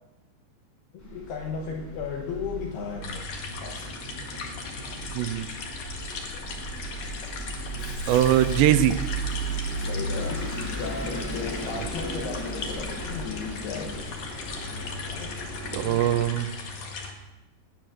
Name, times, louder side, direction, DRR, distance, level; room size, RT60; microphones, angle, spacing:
voice 1, 0.9-3.3 3.6-4.0 9.7-10.5 10.8-14.1 15.1-15.3 15.7-16.0, left 6 dB, 70° left, 2 dB, 2.8 m, -35 dB
Bus, 1.0-16.3, right 2 dB, 5° left, 2.6 m, -35 dB
sound 1, 3.0-17.1, left 4 dB, 55° left, 2.3 m, -38 dB
voice 2, 5.1-5.5 8.1-9.0 11.8-11.9 15.7-16.5, right 12 dB, 80° right, 10 dB, 2.9 m, -22 dB
19.5 x 8.9 x 6.2 m, 1.0 s
omnidirectional pair, 5.3 m